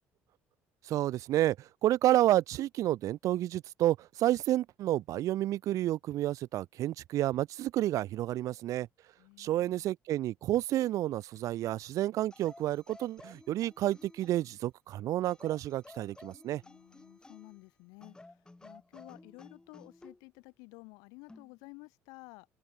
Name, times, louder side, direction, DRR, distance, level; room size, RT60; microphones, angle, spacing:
voice 1, 0.8-8.9 9.4-16.6, right 14 dB, 65° right, 0.5 m, -30 dB
voice 2, 9.2-9.9 16.6-22.5, left 29 dB, 90° left, 7.7 m, -53 dB
sound 1, 12.3-14.6 15.2-17.6 18.0-20.2 21.3-21.5, left 2 dB, 15° left, 4.4 m, -54 dB
supercardioid pair, 85°, 6 cm